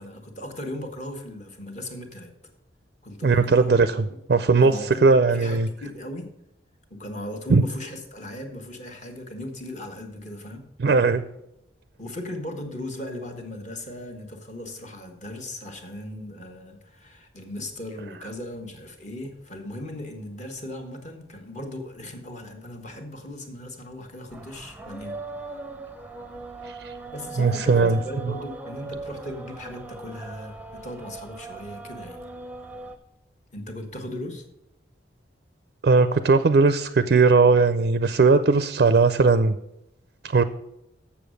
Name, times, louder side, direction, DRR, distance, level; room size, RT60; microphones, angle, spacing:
voice 1, 0.0-2.3 3.0-3.7 4.6-6.3 6.9-10.6 12.0-25.2 26.8-32.2 33.5-34.4, left 1 dB, 40° left, 4 dB, 1.3 m, -37 dB
voice 2, 3.2-5.7 7.5-7.6 10.8-11.2 26.8-26.9 27.4-28.0 35.8-39.6 40.2-40.4, right 4 dB, 55° right, 12 dB, 0.4 m, -18 dB
sound 1, 24.3-33.0, right 3 dB, 10° right, 0.6 m, -40 dB
7.1 x 7.0 x 6.4 m, 0.85 s
head